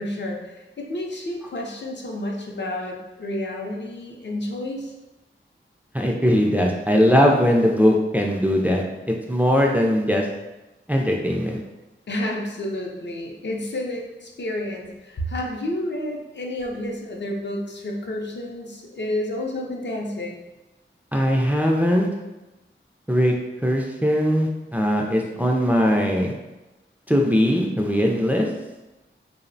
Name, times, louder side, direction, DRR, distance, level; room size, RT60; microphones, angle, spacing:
voice 1, 0.0-4.9 12.1-20.4, left 1 dB, 60° left, 0 dB, 0.5 m, -30 dB
voice 2, 5.9-8.8 9.3-10.3 10.9-11.6 21.1-22.1 23.1-23.3 23.6-26.3 27.1-28.5, equal, 10° right, 0 dB, 0.3 m, -20 dB
2.7 x 2.0 x 2.6 m, 1.0 s
wide cardioid pair, 45°, 21 cm